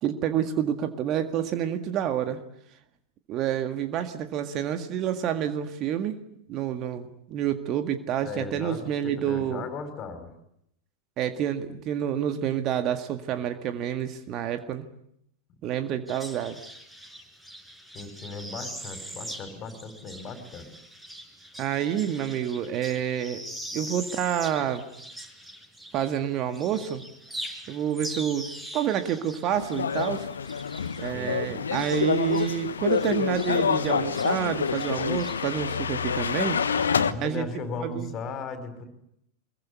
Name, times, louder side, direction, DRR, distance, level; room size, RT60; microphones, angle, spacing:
voice 1, 0.0-2.4 3.3-6.2 6.5-9.7 11.2-14.9 15.6-16.6 21.6-23.4 23.7-24.8 25.9-27.0 27.7-28.5 28.7-30.3 31.0-36.6 37.2-37.5 37.8-38.1, right 9 dB, 35° right, 8 dB, 1.9 m, -28 dB
voice 2, 8.2-10.3 17.9-20.7 31.1-31.6 36.8-38.9, left 4 dB, 30° left, 9 dB, 5.2 m, -37 dB
sound 1, 16.1-26.2 26.5-32.6 32.9-35.6, equal, 5° right, 5.3 m, -42 dB
sound 2, 29.5-37.1, left 6 dB, 70° left, 1.2 m, -27 dB
24.5 x 22.5 x 9.7 m, 0.76 s
figure-of-eight pair, 90°, 0 cm